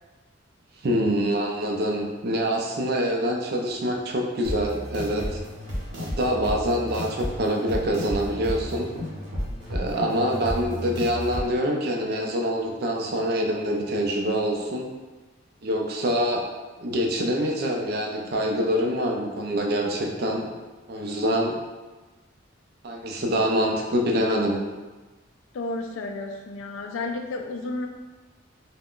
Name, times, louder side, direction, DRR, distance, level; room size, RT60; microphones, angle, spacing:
voice 1, 0.8-5.2 6.0-8.9 9.7-14.9 15.6-16.4 16.8-20.5 20.9-21.6 22.8-24.7, equal, 50° right, 0 dB, 0.4 m, -25 dB
sound 1, 4.4-11.5, equal, 65° right, 0.8 m, -33 dB
voice 2, 25.5-27.9, left 2 dB, 70° left, 3 dB, 0.3 m, -32 dB
2.4 x 2.1 x 3.6 m, 1.2 s
head